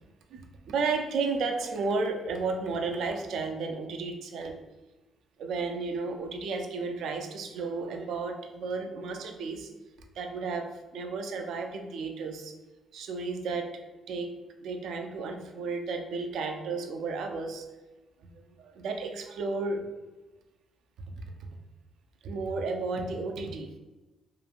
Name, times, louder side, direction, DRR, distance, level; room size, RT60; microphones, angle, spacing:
voice 1, 0.3-4.6 5.4-9.7 10.2-12.5 12.9-14.3 14.6-17.6 18.2-19.9 21.1-21.3 22.2-23.8, right 4 dB, 75° right, 5 dB, 0.3 m, -33 dB
2.9 x 2.4 x 2.4 m, 1.1 s
cardioid pair, 90°, 0 cm